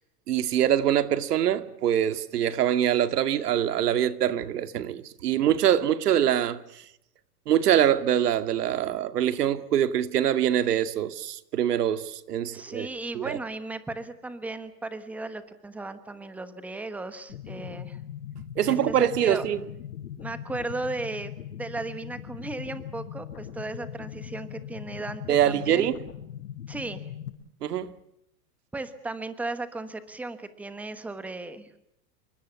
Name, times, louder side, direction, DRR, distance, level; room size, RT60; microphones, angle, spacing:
voice 1, 0.3-6.8 7.5-12.9 13.1-13.4 18.6-19.6 25.3-26.0 27.6-27.9, right 10 dB, 85° right, 2.3 m, -24 dB
voice 2, 12.5-18.0 18.6-19.4 20.2-21.3 21.6-25.9 26.7-27.0 28.7-31.8, right 2 dB, 5° right, 1.1 m, -36 dB
sound 1, 17.3-27.3, left 10 dB, 85° left, 6.0 m, -40 dB
28.0 x 24.5 x 7.1 m
supercardioid pair, 170°, 46 cm